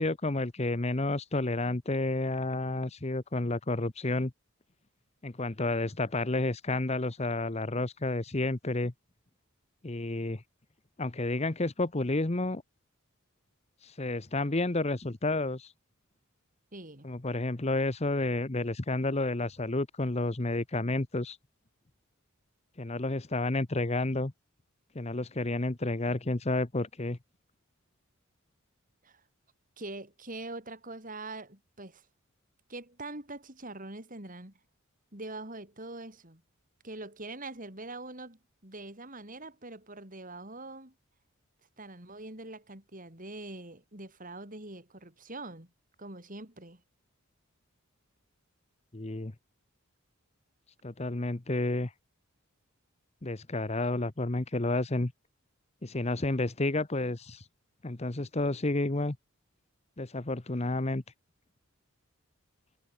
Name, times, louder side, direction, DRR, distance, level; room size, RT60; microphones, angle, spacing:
voice 1, 0.0-4.3 5.2-8.9 9.8-10.4 11.0-12.6 13.8-15.7 17.0-21.4 22.8-24.3 24.9-27.2 48.9-49.3 50.8-51.9 53.2-55.1 55.8-57.4 57.8-59.2 60.0-61.0, left 2 dB, 30° left, 1.0 m, -30 dB
voice 2, 16.7-17.1 29.0-29.2 29.8-32.0 32.7-34.5 35.1-36.4 36.8-40.9 41.8-45.7 46.0-46.8, right 2 dB, 40° right, 5.2 m, -43 dB
head